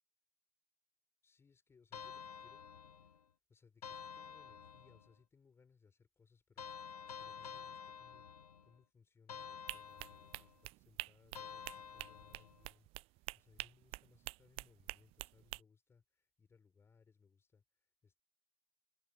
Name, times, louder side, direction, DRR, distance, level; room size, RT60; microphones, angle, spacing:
voice 1, 1.2-3.2 3.5-8.3 8.6-18.2, left 5 dB, 10° left, 5.2 m, -69 dB
sound 1, 1.9-3.2 3.8-5.1 6.6-8.8 9.3-10.6 11.3-12.6, left 7 dB, 65° left, 1.2 m, -50 dB
sound 2, 9.7-15.6, right 22 dB, 25° right, 0.8 m, -47 dB
figure-of-eight pair, 105°, 21 cm